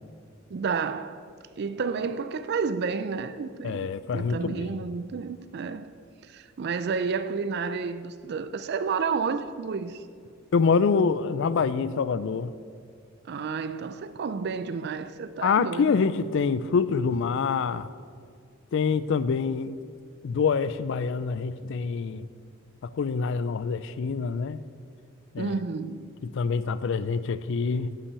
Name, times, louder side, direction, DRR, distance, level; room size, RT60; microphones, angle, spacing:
voice 1, 0.5-1.3 1.6-3.9 4.1-5.9 6.3-10.0 13.3-16.1 25.4-26.1, right 5 dB, 50° right, 0.4 m, -31 dB
voice 2, 3.6-4.9 10.5-12.6 15.4-17.9 18.7-19.8 20.2-22.3 22.8-24.6 25.3-25.6 26.2-28.0, left 5 dB, 60° left, 0.4 m, -26 dB
9.9 x 5.8 x 6.8 m
head